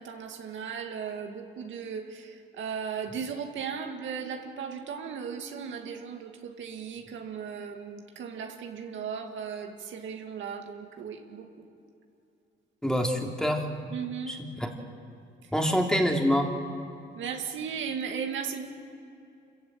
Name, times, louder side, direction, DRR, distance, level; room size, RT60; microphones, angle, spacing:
voice 1, 0.0-11.6 13.9-14.4 15.4-15.5 17.2-18.7, right 6 dB, 75° right, 4 dB, 2.2 m, -36 dB
voice 2, 12.8-13.7 14.3-14.4 14.6-14.7 15.5-16.5, equal, 5° left, 2 dB, 3.1 m, -25 dB
26.0 x 15.0 x 8.9 m, 2.6 s
cardioid pair, 90°, 20 cm